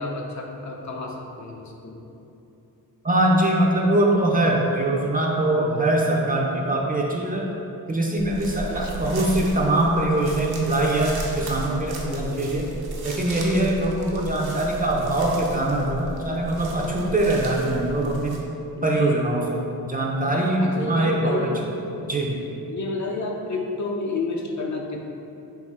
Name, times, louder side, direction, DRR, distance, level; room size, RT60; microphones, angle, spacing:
voice 1, 0.0-2.0 5.5-5.9 8.7-9.0 12.0-12.6 16.3-16.4 18.8-19.4 20.3-21.7 22.0-25.0, left 3 dB, 45° left, 0 dB, 0.5 m, -31 dB
voice 2, 3.0-7.5 7.9-12.7 13.0-18.4 18.8-19.6 19.9-21.5 22.1-22.4, right 1 dB, 25° right, -2 dB, 0.4 m, -22 dB
sound 1, 8.2-18.4, right 1 dB, 70° right, 0.7 m, -35 dB
3.6 x 2.7 x 4.1 m, 2.8 s
cardioid pair, 65°, 39 cm